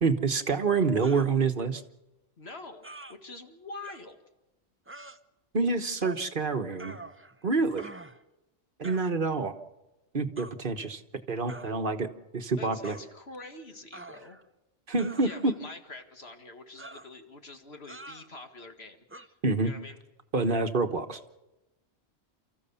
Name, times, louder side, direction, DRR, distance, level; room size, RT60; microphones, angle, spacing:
voice 1, 0.0-1.8 5.5-7.0 7.4-7.9 8.8-9.5 10.1-11.0 11.3-12.1 12.3-12.9 14.9-15.5 19.4-19.7 20.3-21.2, right 4 dB, 50° right, 7 dB, 1.3 m, -27 dB
sound 1, 1.0-1.3 2.8-3.2 3.8-4.0 4.9-5.2 6.0-6.3 6.8-7.4 7.8-8.2 8.8-9.1 10.4-10.6 11.5-11.8 12.8-13.1 13.9-14.5 15.0-15.6 16.8-17.1 17.9-18.3 19.1-19.3, right 2 dB, 15° right, 0.7 m, -45 dB
voice 2, 2.4-4.2 12.6-14.4 15.2-19.4 19.6-20.0, left 3 dB, 65° left, 5 dB, 2.2 m, -45 dB
29.5 x 14.5 x 7.0 m, 0.99 s
omnidirectional pair, 1.2 m